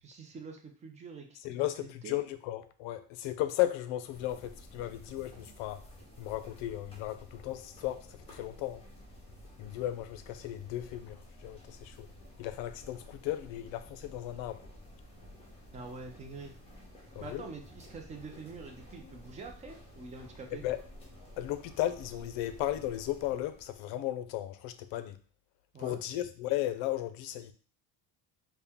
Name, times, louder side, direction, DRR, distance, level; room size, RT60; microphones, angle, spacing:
voice 1, 0.0-1.4 1.8-2.2 15.7-16.5 17.2-20.6 25.7-26.0, right 4 dB, 15° right, 0.3 m, -45 dB
voice 2, 1.4-5.8 6.2-8.8 9.6-12.1 12.4-14.6 17.1-17.4 20.6-20.8 21.4-25.2 25.8-27.5, left 14 dB, 70° left, 0.6 m, -35 dB
sound 1, 4.1-23.8, left 1 dB, 10° left, 1.1 m, -52 dB
4.3 x 2.2 x 3.5 m
cardioid pair, 150°, 47 cm